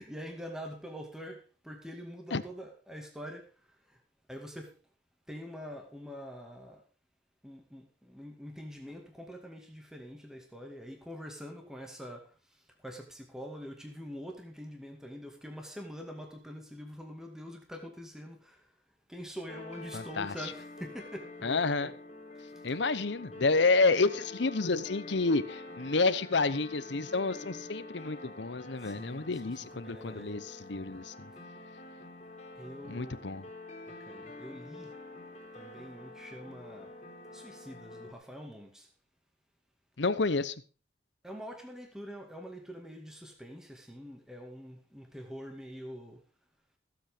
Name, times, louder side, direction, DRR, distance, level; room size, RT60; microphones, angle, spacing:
voice 1, 0.0-4.0 4.3-4.7 5.3-6.8 7.4-18.8 19.1-21.9 22.4-22.7 28.8-30.3 32.6-33.3 33.9-34.9 35.5-36.9 37.3-38.9 41.2-46.2, equal, 5° right, 2.1 m, -45 dB
sound 1, 19.5-38.1, left 2 dB, 40° left, 3.0 m, -47 dB
voice 2, 19.9-20.5 21.4-21.9 22.6-31.3 32.9-33.4 40.0-40.5, left 3 dB, 70° left, 0.9 m, -29 dB
15.5 x 8.1 x 5.1 m
head